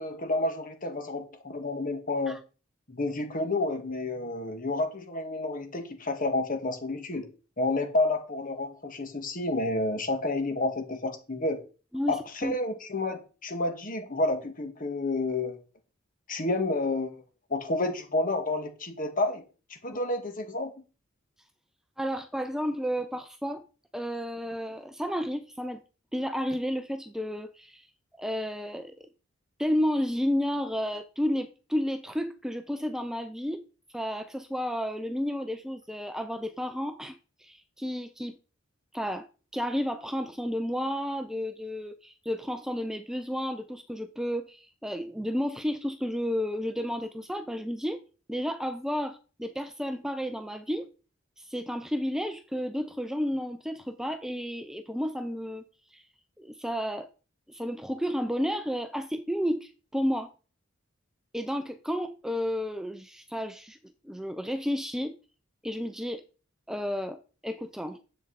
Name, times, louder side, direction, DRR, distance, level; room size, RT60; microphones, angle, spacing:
voice 1, 0.0-2.4 2.9-7.3 7.6-11.6 12.1-15.6 16.3-17.2 17.5-19.4 19.8-20.7, left 2 dB, 45° left, 1.9 m, -30 dB
voice 2, 11.9-12.6 22.0-23.6 23.9-25.8 26.1-27.9 28.2-28.9 29.6-33.6 33.9-38.4 38.9-39.3 39.5-48.0 48.3-50.9 51.4-55.6 55.9-56.0 56.4-57.1 57.5-60.3 61.3-63.8 64.0-65.2 65.6-66.2 66.7-67.2 67.4-68.0, equal, 5° right, 0.6 m, -32 dB
11.0 x 7.9 x 4.1 m
head